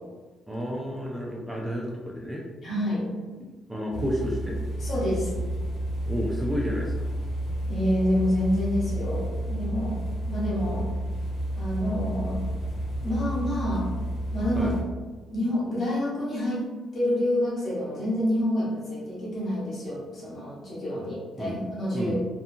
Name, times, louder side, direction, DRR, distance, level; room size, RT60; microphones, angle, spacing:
voice 1, 0.5-2.4 3.7-4.6 6.1-7.2 10.7-10.8 14.5-14.7 21.3-21.6 21.9-22.2, equal, 10° right, -2 dB, 0.4 m, -31 dB
voice 2, 2.6-3.1 4.8-5.3 7.7-10.0 10.3-10.8 11.5-12.4 13.0-13.9 14.3-14.7 15.3-16.7 16.9-22.2, left 1 dB, 50° left, -6 dB, 1.2 m, -28 dB
sound 1, 3.9-14.8, right 1 dB, 70° left, 0.7 m, -31 dB
2.5 x 2.3 x 2.7 m, 1.3 s
cardioid pair, 90°, 0 cm